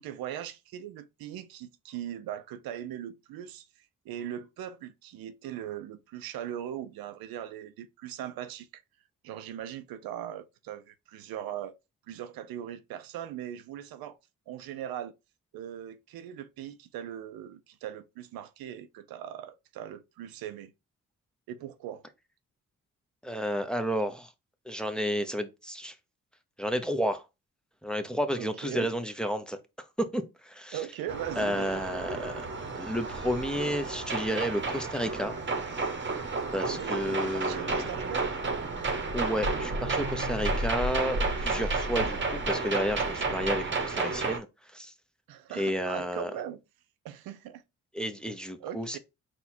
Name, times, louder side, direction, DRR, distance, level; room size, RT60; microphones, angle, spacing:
voice 1, 0.0-3.7 4.0-8.8 9.2-11.7 12.1-14.2 14.5-15.1 15.5-20.7 21.5-22.0 28.4-28.9 30.7-31.8 36.6-38.3 41.8-42.3 45.3-46.6 47.0-47.6 48.6-49.0, right 10 dB, 85° right, 0.6 m, -40 dB
voice 2, 23.2-24.3 24.7-25.9 26.6-27.2 27.8-29.6 30.0-30.8 31.4-32.5 32.7-35.3 36.5-37.9 39.1-44.5 44.7-44.9 45.5-46.3 47.9-49.0, equal, ahead, 0.8 m, -31 dB
sound 1, 31.1-44.4, right 3 dB, 35° right, 1.0 m, -31 dB
4.2 x 2.4 x 4.2 m
supercardioid pair, 60°, 35 cm